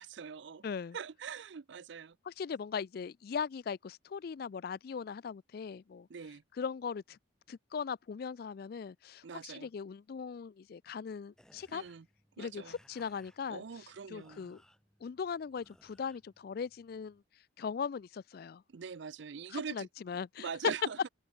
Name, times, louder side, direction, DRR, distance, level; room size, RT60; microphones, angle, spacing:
voice 1, 0.0-0.7 0.9-2.2 6.1-6.4 9.2-9.7 11.7-12.1 12.4-12.7 13.5-14.5 18.7-19.9 20.4-21.1, right 6 dB, 65° right, 0.5 m, -43 dB
voice 2, 0.6-1.0 2.2-6.1 6.5-7.2 7.5-11.8 12.4-14.6 15.0-17.2 17.6-18.6 19.5-20.5, left 6 dB, 50° left, 0.3 m, -39 dB
sound 1, 11.3-17.2, equal, 5° left, 3.7 m, -66 dB
open air
head